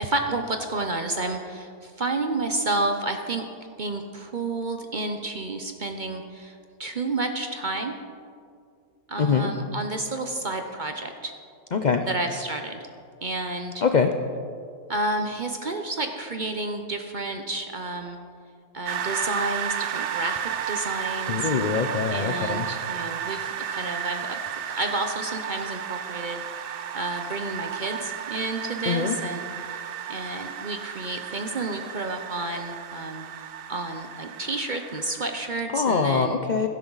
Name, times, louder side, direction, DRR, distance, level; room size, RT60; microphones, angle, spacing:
voice 1, 0.0-3.5 3.8-6.5 6.8-8.0 9.1-11.3 12.0-12.8 13.2-13.8 14.9-18.2 18.7-21.5 22.1-24.4 24.7-26.4 26.9-29.5 30.1-36.4, right 2 dB, 45° right, 5 dB, 0.7 m, -30 dB
voice 2, 9.2-9.5 11.7-12.0 13.8-14.1 21.3-22.7 28.9-29.2 35.7-36.7, left 5 dB, 75° left, 6 dB, 0.4 m, -23 dB
sound 1, 18.8-35.5, right 9 dB, 80° right, 0.5 m, -33 dB
16.5 x 12.0 x 4.0 m, 2.3 s
omnidirectional pair, 1.6 m